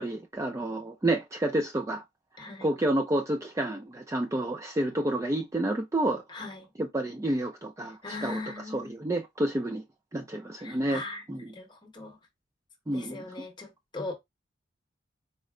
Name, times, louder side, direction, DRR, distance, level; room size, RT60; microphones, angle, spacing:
voice 1, 0.0-2.0 2.4-6.2 6.8-8.4 8.7-9.8 10.1-11.5 12.9-13.2, right 1 dB, 15° right, 0.3 m, -29 dB
voice 2, 2.4-2.7 6.3-6.7 8.0-9.0 10.6-11.2 11.5-12.2 12.9-14.1, left 2 dB, 25° left, 1.0 m, -39 dB
4.2 x 2.0 x 3.6 m
head